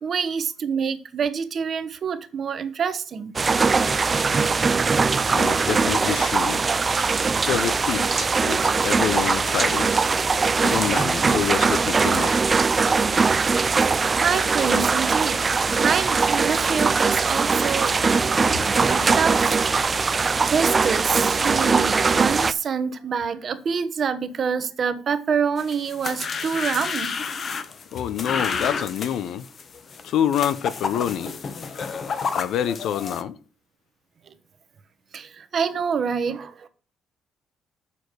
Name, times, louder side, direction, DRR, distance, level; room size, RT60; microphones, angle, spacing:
voice 1, 0.0-3.3 14.2-18.0 18.9-19.6 19.9-20.1 20.5-27.1 34.3-34.4 35.1-36.7, right 6 dB, 45° right, 1.1 m, -26 dB
sound 1, 3.4-22.5, right 4 dB, 25° right, 0.4 m, -21 dB
voice 2, 5.3-6.6 7.4-10.1 10.6-12.4 27.9-29.5 30.0-31.3 32.4-33.4, left 9 dB, 70° left, 0.8 m, -27 dB
sound 2, 10.3-10.6 12.8-13.6 14.2-14.8 15.2-15.3 15.8-16.0 16.4-19.7, left 2 dB, 25° left, 1.9 m, -45 dB
sound 3, 25.6-33.2, left 5 dB, 40° left, 1.0 m, -30 dB
8.2 x 7.0 x 4.8 m
cardioid pair, 120°, 0 cm